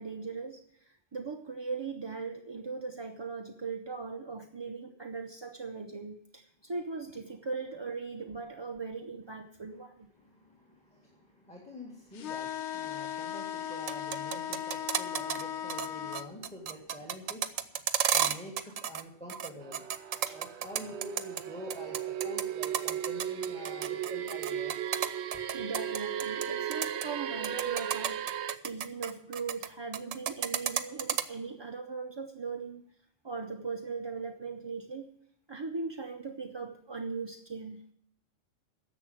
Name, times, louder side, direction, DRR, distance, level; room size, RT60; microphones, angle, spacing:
voice 1, 0.0-10.1 20.3-20.4 25.2-28.4 28.6-32.9 33.2-35.1 35.5-37.8, right 4 dB, 30° right, 4 dB, 0.5 m, -39 dB
voice 2, 10.1-17.7 18.1-19.8 20.3-24.9, left 1 dB, 5° left, -1 dB, 2.1 m, -46 dB
sound 1, 12.2-16.3, left 9 dB, 70° left, 0.9 m, -37 dB
sound 2, 13.7-15.4 15.7-15.9 16.1-19.0 19.3-21.4 21.7-26.5 26.7-27.1 27.4-29.7 29.9-31.2, right 9 dB, 85° right, 1.1 m, -31 dB
sound 3, 19.6-28.6, right 9 dB, 65° right, 0.8 m, -36 dB
11.0 x 7.2 x 8.9 m, 0.71 s
omnidirectional pair, 1.3 m